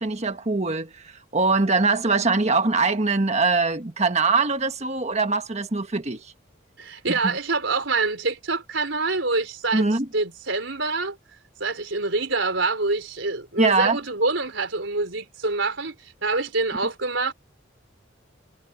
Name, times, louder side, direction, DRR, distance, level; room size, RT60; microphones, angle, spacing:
voice 1, 0.0-6.3 7.1-7.3 9.7-10.1 13.6-14.0, right 3 dB, 35° right, 1.4 m, -22 dB
voice 2, 6.8-9.8 10.1-11.2 11.6-16.0 16.2-17.3, right 3 dB, 70° right, 4.4 m, -26 dB
head